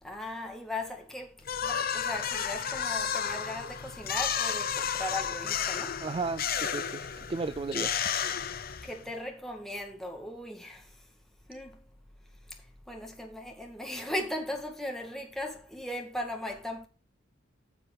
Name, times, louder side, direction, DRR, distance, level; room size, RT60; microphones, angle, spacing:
voice 1, 0.0-6.0 8.8-11.0 11.5-11.8 12.9-16.9, left 1 dB, ahead, 2.2 m, -38 dB
sound 1, 1.4-9.1, left 8 dB, 45° left, 0.9 m, -32 dB
voice 2, 6.0-8.1, right 3 dB, 25° right, 0.4 m, -34 dB
9.9 x 7.0 x 3.8 m
head